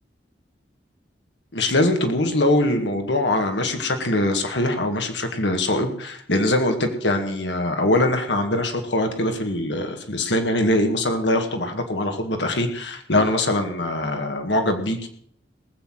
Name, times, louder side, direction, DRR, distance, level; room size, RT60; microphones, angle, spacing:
voice 1, 1.5-15.1, left 1 dB, 90° left, 5 dB, 2.0 m, -22 dB
19.0 x 7.8 x 6.4 m, 0.63 s
head